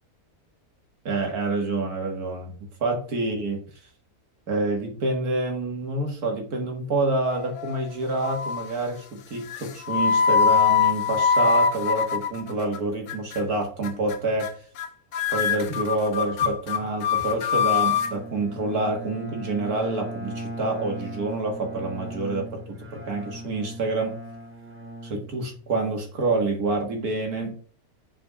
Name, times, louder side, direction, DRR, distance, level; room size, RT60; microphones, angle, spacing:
voice 1, 1.1-2.6 2.8-3.6 4.5-14.5 15.1-24.2 25.0-27.6, right 2 dB, 80° right, 3 dB, 2.2 m, -27 dB
sound 1, 7.3-7.8 8.2-8.7 9.5-12.8 13.1-13.4 13.8-14.2 14.4-14.9 15.1-18.1, left 6 dB, 85° left, 1.3 m, -23 dB
Bowed string instrument, 17.4-25.9, right 1 dB, 10° right, 1.0 m, -39 dB
6.1 x 4.6 x 4.6 m, 0.44 s
omnidirectional pair, 1.6 m